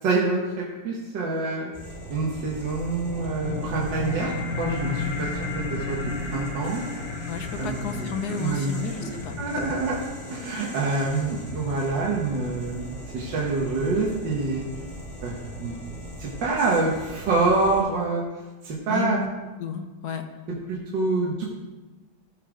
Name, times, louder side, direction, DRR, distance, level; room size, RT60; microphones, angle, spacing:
voice 1, 0.0-1.7 2.1-4.3 4.6-5.3 5.7-6.0 6.3-6.8 7.6-8.1 8.4-8.8 9.0-9.1 9.4-10.0 10.3-14.6 15.2-18.2 18.6-19.2 20.7-21.4, right 3 dB, 70° right, -3 dB, 1.9 m, -26 dB
sound 1, 1.7-17.8, equal, 5° right, 2.5 m, -40 dB
sound 2, 2.8-13.8, left 4 dB, 35° left, 1.2 m, -34 dB
voice 2, 7.3-9.7 10.5-10.6 18.9-19.3 19.6-20.3, left 5 dB, 65° left, 7 dB, 1.3 m, -32 dB
14.0 x 5.5 x 5.0 m, 1.2 s
omnidirectional pair, 2.1 m